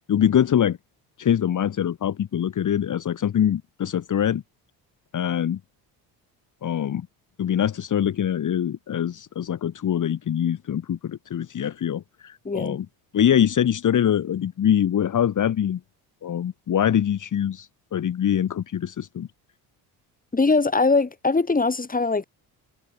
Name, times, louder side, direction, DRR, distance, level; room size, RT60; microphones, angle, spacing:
voice 1, 0.1-0.8 1.2-4.4 5.1-5.6 6.6-7.1 7.4-12.9 13.1-15.8 16.2-19.3, left 9 dB, 45° left, 1.7 m, -23 dB
voice 2, 12.5-12.8 20.3-22.2, left 3 dB, 20° left, 3.5 m, -21 dB
cardioid pair, 90°, 42 cm